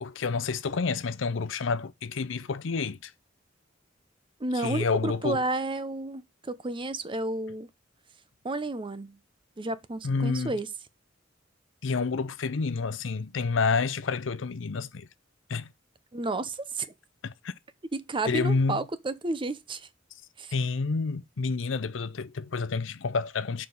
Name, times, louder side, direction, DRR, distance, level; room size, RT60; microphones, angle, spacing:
voice 1, 0.0-3.1 4.6-5.4 10.0-10.6 11.8-15.1 15.5-15.7 17.2-17.5 18.2-18.8 20.5-23.7, left 4 dB, 70° left, 0.6 m, -29 dB
voice 2, 4.4-7.7 8.4-9.2 9.6-10.7 16.1-16.9 17.9-19.9 20.4-20.5, right 2 dB, 25° right, 0.6 m, -31 dB
6.8 x 4.9 x 5.3 m
head